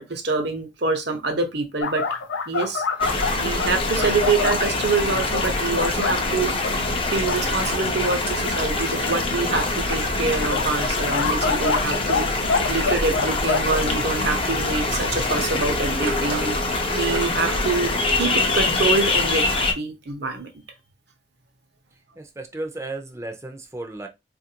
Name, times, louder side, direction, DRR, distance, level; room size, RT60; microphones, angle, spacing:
voice 1, 0.0-2.0 2.5-2.8 3.4-6.5 7.1-16.6 16.9-20.5, right 3 dB, 60° right, 0.9 m, -26 dB
sound 1, 1.8-4.7 5.3-6.2 6.6-6.7 7.1-7.4 8.1-8.2 9.5-9.7 10.5-12.2 12.5-13.9, left 4 dB, 90° left, 0.5 m, -26 dB
sound 2, 3.0-19.7, left 2 dB, 30° left, 0.6 m, -24 dB
sound 3, 16.1-17.7, right 7 dB, 90° right, 0.4 m, -35 dB
voice 2, 22.2-24.1, right 2 dB, 15° right, 0.6 m, -34 dB
4.1 x 2.5 x 2.8 m
head